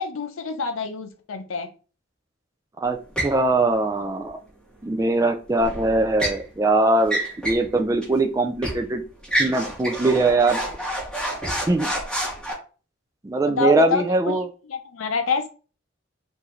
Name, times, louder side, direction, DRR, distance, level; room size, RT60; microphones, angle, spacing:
voice 1, 0.0-1.7 13.5-14.4 14.7-15.5, left 4 dB, 85° left, 7 dB, 0.6 m, -27 dB
sound 1, 3.2-3.4 5.6-6.4 7.0-7.7 8.0-8.1 8.6-8.8 9.2-12.5, right 1 dB, 5° left, 2.0 m, -28 dB
voice 2, 3.2-4.4 4.8-9.0 9.4-10.6 11.7-11.9 13.2-14.5, right 2 dB, 15° right, 4 dB, 0.3 m, -21 dB
4.7 x 2.6 x 3.0 m, 0.36 s
head